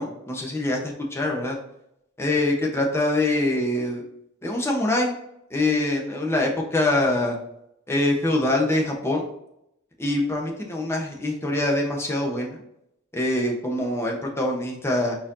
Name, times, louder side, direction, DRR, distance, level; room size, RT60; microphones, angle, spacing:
voice 1, 0.0-1.5 2.2-4.0 4.4-5.1 5.5-7.4 7.9-9.2 10.0-12.6 13.1-15.2, left 1 dB, 10° left, -1 dB, 0.9 m, -24 dB
4.4 x 4.4 x 2.7 m, 0.78 s
head